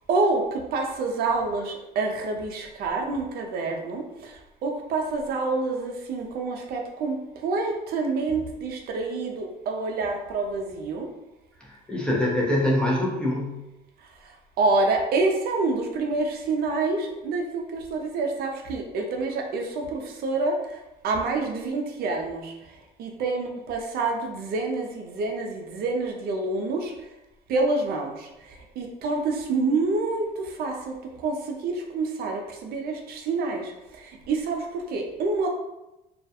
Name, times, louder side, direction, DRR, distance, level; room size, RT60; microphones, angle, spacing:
voice 1, 0.1-11.1 14.2-20.8 21.0-26.9 27.5-35.5, right 3 dB, 65° right, 2 dB, 0.4 m, -27 dB
voice 2, 11.6-13.6, left 1 dB, 5° left, -4 dB, 0.6 m, -24 dB
2.3 x 2.1 x 2.7 m, 0.95 s
cardioid pair, 110°, 17 cm